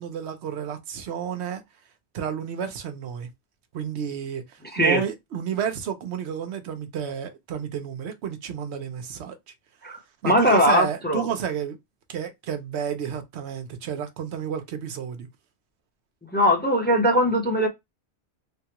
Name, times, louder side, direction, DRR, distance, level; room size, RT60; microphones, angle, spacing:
voice 1, 0.0-1.6 2.1-3.3 3.7-9.4 10.2-11.8 12.1-15.3, right 8 dB, 80° right, 0.9 m, -31 dB
voice 2, 4.7-5.0 9.8-11.3 16.3-17.7, equal, 10° left, 0.8 m, -21 dB
3.4 x 2.3 x 2.8 m
omnidirectional pair, 1.1 m